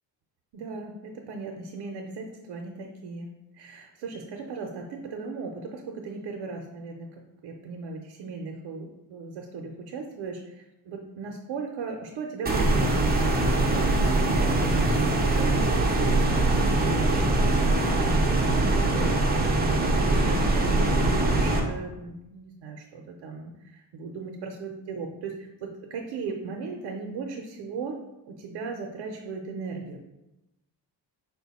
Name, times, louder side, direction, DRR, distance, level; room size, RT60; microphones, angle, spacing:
voice 1, 0.5-7.1 7.4-28.0 28.3-30.0, right 4 dB, 90° right, 1 dB, 0.6 m, -37 dB
sound 1, 12.5-21.6, right 2 dB, 25° right, 0.5 m, -22 dB
4.5 x 2.2 x 4.0 m, 0.93 s
wide cardioid pair, 150°, 43 cm